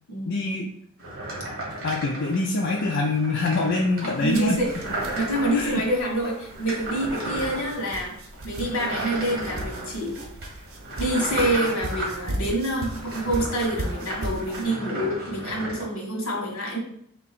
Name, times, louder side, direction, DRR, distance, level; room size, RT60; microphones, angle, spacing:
voice 1, 0.3-0.7 1.8-4.6 5.5-5.8, left 2 dB, 55° left, -1 dB, 0.5 m, -24 dB
sound 1, 1.0-15.8, right 1 dB, 45° right, 1.6 m, -35 dB
voice 2, 4.0-4.7 5.1-8.1 8.4-10.2 11.0-16.8, right 1 dB, 80° left, -1 dB, 1.4 m, -27 dB
sound 2, 4.2-14.7, right 1 dB, 70° right, 0.8 m, -37 dB
3.6 x 2.9 x 4.2 m, 0.70 s
head